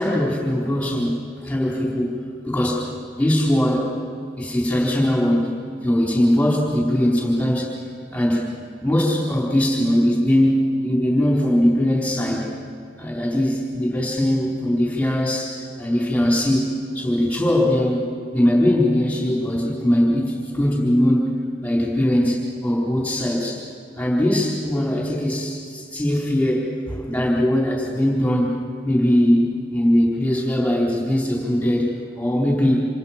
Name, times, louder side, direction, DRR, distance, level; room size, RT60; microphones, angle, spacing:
voice 1, 0.0-2.1 2.5-2.8 3.1-3.9 4.4-7.7 8.1-8.5 8.8-10.6 10.8-12.6 13.0-16.7 16.9-18.0 18.3-21.3 21.6-23.6 23.9-28.5 28.8-32.9, left 1 dB, 10° left, -3 dB, 4.1 m, -20 dB
27.5 x 27.5 x 6.0 m, 2.3 s
head